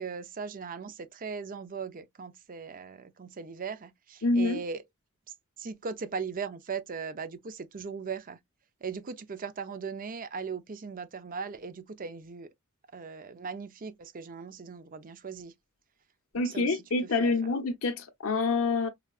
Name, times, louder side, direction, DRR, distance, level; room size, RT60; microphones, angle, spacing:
voice 1, 0.0-4.8 5.6-8.4 8.8-12.5 12.9-15.5 16.4-16.8 17.2-17.3, right 5 dB, 40° right, 0.5 m, -38 dB
voice 2, 4.2-4.6 16.3-18.9, left 3 dB, 65° left, 0.9 m, -27 dB
4.9 x 2.3 x 2.4 m
head